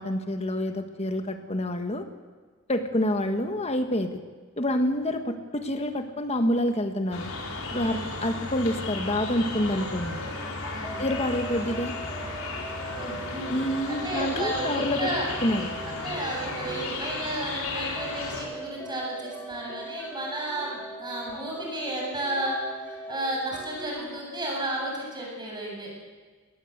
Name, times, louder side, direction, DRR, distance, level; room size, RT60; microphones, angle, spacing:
voice 1, 0.0-2.1 2.7-4.2 4.6-7.3 7.7-10.2 11.0-11.9 13.5-15.1 15.4-15.7, left 1 dB, 30° left, 7 dB, 1.6 m, -27 dB
sound 1, 7.1-18.5, left 3 dB, 80° left, 4.7 m, -35 dB
voice 2, 7.7-8.1 10.7-11.1 13.0-13.5 13.9-15.2 16.0-25.9, right 1 dB, 20° right, -2 dB, 7.6 m, -33 dB
sound 2, 9.9-24.2, right 1 dB, 10° left, 3.8 m, -41 dB
25.5 x 19.0 x 8.2 m, 1.4 s
head